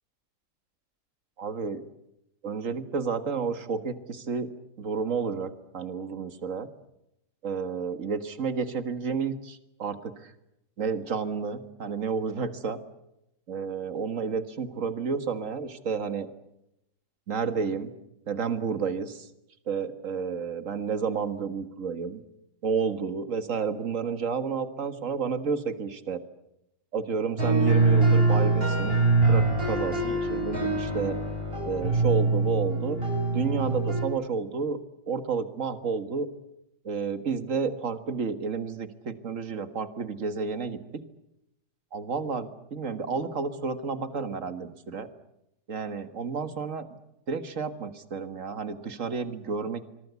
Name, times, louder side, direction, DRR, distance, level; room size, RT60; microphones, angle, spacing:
voice 1, 1.4-1.8 2.4-4.5 4.8-6.7 7.4-10.3 10.8-12.8 13.5-16.3 17.3-17.9 18.3-19.3 19.7-22.2 22.6-26.2 26.9-29.0 29.3-31.2 31.6-33.0 33.3-34.8 35.1-36.3 36.8-41.0 41.9-45.1 45.7-46.9 47.3-49.8, right 5 dB, 50° right, 11 dB, 2.0 m, -31 dB
sound 1, 27.4-34.0, right 3 dB, 30° right, 5.9 m, -24 dB
26.0 x 23.0 x 8.3 m, 0.85 s
omnidirectional pair, 1.9 m